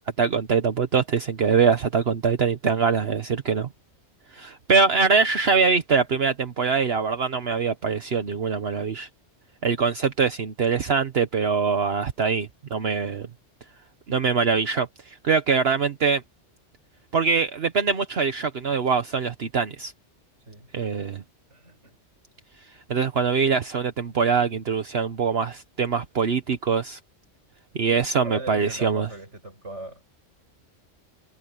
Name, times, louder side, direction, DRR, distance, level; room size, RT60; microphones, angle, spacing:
voice 1, 0.2-3.7 4.3-9.1 9.6-13.3 14.1-16.2 17.1-19.9 20.7-21.2 22.9-27.0 27.7-29.1, right 5 dB, 60° right, 1.3 m, -23 dB
voice 2, 21.5-22.0 28.2-30.1, right 2 dB, 75° right, 6.6 m, -39 dB
omnidirectional pair, 1.2 m